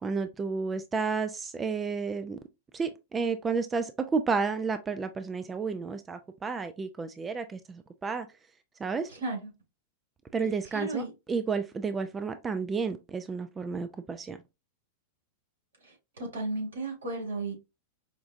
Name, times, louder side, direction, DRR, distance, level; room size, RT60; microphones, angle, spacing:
voice 1, 0.0-2.4 2.7-8.3 8.8-9.1 10.3-14.4, right 5 dB, 20° right, 0.3 m, -31 dB
voice 2, 10.7-11.1 16.2-17.5, right 2 dB, 80° right, 2.3 m, -33 dB
5.0 x 2.3 x 2.5 m
hypercardioid pair, 100°, 0 cm